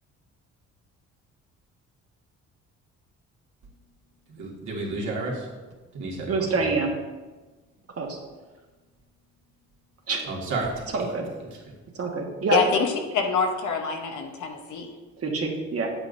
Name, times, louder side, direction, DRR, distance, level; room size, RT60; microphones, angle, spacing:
voice 1, 4.3-5.5 5.9-6.3 10.2-10.9, right 2 dB, 70° right, -3 dB, 2.1 m, -31 dB
voice 2, 6.3-6.9 8.0-8.2 10.1-10.2 10.9-11.3 11.9-12.6 15.2-15.9, right 4 dB, 50° right, 1 dB, 1.5 m, -26 dB
voice 3, 12.5-12.9 13.1-14.9, left 5 dB, 75° left, 4 dB, 1.0 m, -25 dB
8.1 x 7.9 x 2.6 m, 1.3 s
cardioid pair, 90°, 30 cm